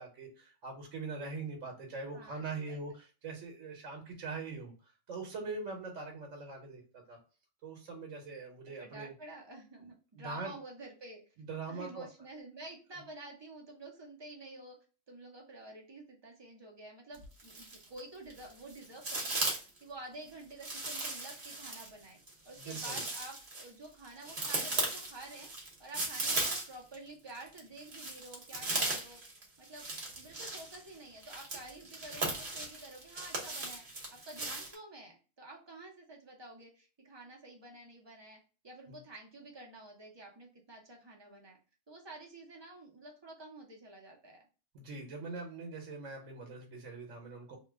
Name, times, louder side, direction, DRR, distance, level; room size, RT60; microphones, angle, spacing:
voice 1, 0.0-4.7 5.1-7.2 7.6-9.1 9.8-9.9 10.1-10.5 11.4-12.1 22.6-23.0 38.9-39.0 44.7-47.6, right 3 dB, 80° right, 2 dB, 1.1 m, -42 dB
voice 2, 2.1-2.8 8.8-11.2 11.7-14.8 15.1-22.2 22.4-25.5 25.8-29.2 29.6-29.9 30.2-33.8 34.1-41.6 41.9-44.4, right 2 dB, 25° right, -1 dB, 0.6 m, -50 dB
sound 1, 17.1-18.0 18.3-19.8 20.6-27.0 27.3-34.7, right 2 dB, 45° right, 1.0 m, -37 dB
2.8 x 2.1 x 3.4 m, 0.35 s
omnidirectional pair, 1.3 m